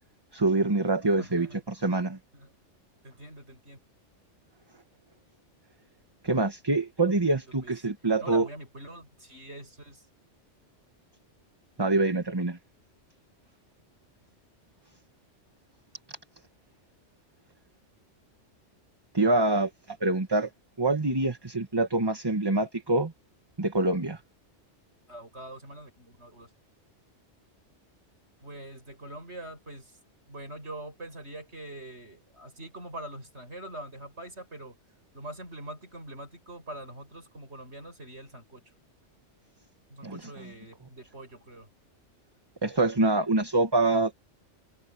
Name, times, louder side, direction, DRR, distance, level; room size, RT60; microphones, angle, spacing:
voice 1, 0.3-2.2 6.2-8.5 11.8-12.6 19.1-20.5 20.8-23.1 23.6-24.2 40.0-40.2 42.6-44.1, right 2 dB, 20° right, 1.3 m, -25 dB
voice 2, 1.1-1.6 2.3-2.5 3.0-3.8 7.4-7.8 8.2-10.1 25.1-26.5 28.4-30.0 30.3-34.8 35.1-38.6 39.9-41.7, right 1 dB, 65° right, 7.4 m, -44 dB
omnidirectional pair, 1.2 m